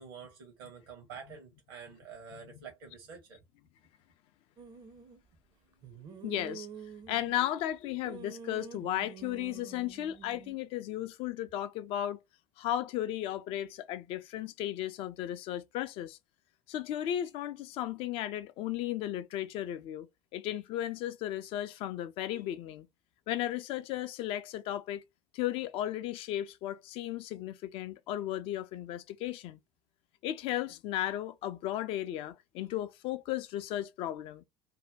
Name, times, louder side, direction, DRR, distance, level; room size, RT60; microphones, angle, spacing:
voice 1, 0.0-3.4, right 6 dB, 65° right, 0.8 m, -48 dB
sound 1, 4.6-5.2 5.8-7.6 8.0-10.6, right 6 dB, 35° right, 0.5 m, -48 dB
voice 2, 6.2-6.7 7.1-12.2 12.6-16.2 16.7-22.9 23.3-25.0 25.3-29.6 30.2-34.4, left 12 dB, 45° left, 0.4 m, -35 dB
2.6 x 2.1 x 3.3 m
figure-of-eight pair, 65°, 13 cm